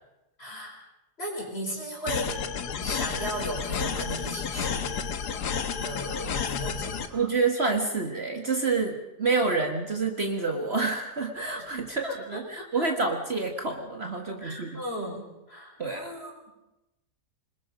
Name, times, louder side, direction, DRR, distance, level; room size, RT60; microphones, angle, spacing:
voice 1, 0.4-0.8 1.2-2.4 2.8-5.0 5.8-7.2 12.0-13.1 14.4-16.3, equal, 35° left, 0 dB, 5.2 m, -36 dB
sound 1, 2.1-7.1, left 6 dB, 75° left, 1.8 m, -31 dB
voice 2, 7.1-14.8 15.8-16.1, right 4 dB, 40° right, 3 dB, 1.9 m, -28 dB
25.5 x 21.0 x 5.2 m, 0.95 s
omnidirectional pair, 1.7 m